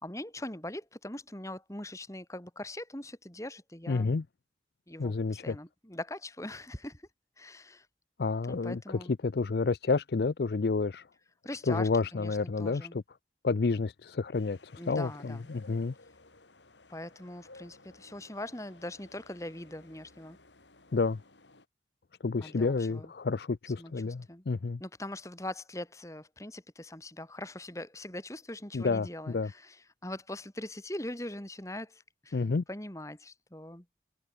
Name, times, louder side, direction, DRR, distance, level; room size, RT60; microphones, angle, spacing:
voice 1, 0.0-4.2 4.9-7.0 7.4-7.9 8.5-9.1 11.4-13.0 14.8-15.5 16.9-20.4 22.4-23.1 23.8-24.4 24.8-32.4 32.7-33.9, left 1 dB, 15° left, 2.5 m, -42 dB
voice 2, 3.9-4.2 5.0-5.6 8.2-8.8 9.2-11.0 11.7-13.0 13.4-15.9 20.9-21.2 22.2-24.8 28.7-29.5 32.3-32.6, left 4 dB, 65° left, 0.5 m, -30 dB
sound 1, 14.3-21.7, left 2 dB, 90° left, 3.9 m, -57 dB
head